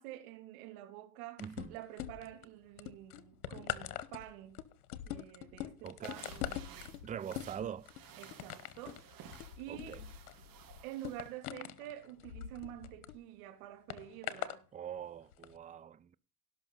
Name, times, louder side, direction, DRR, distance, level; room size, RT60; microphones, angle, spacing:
voice 1, 0.0-4.6 5.0-7.3 8.2-9.0 9.6-10.1 10.8-14.6, right 13 dB, 75° right, 2.6 m, -48 dB
sound 1, 1.4-2.4 2.8-13.2 13.9-14.6 15.3-15.5, left 12 dB, 85° left, 1.1 m, -43 dB
voice 2, 1.4-1.8 5.8-6.2 7.0-7.9 9.7-10.0 14.7-16.2, right 8 dB, 20° right, 0.5 m, -43 dB
sound 2, 6.0-11.3, right 9 dB, 50° right, 3.9 m, -55 dB
17.5 x 6.1 x 4.0 m
hypercardioid pair, 90°, 43 cm